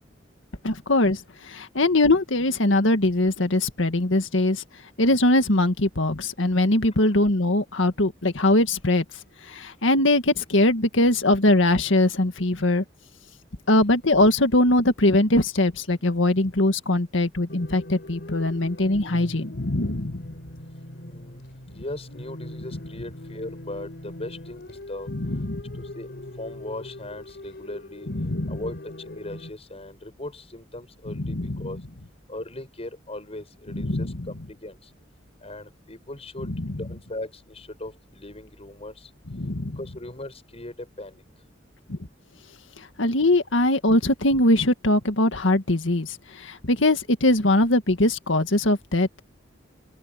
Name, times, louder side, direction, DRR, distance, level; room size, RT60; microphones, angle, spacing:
voice 1, 0.6-4.6 5.0-9.0 9.5-12.8 13.7-20.3 21.7-21.8 25.1-25.8 28.1-28.6 31.1-31.7 33.7-34.3 36.5-36.6 39.3-39.8 41.9-42.0 42.8-49.2, left 1 dB, 85° left, 1.9 m, -22 dB
sound 1, 17.5-29.5, left 1 dB, 60° left, 3.7 m, -40 dB
voice 2, 20.9-21.4 21.7-25.1 25.9-28.1 28.5-28.7 29.0-31.8 32.3-34.8 35.4-38.9 39.8-41.2, left 1 dB, 35° left, 6.7 m, -38 dB
open air
head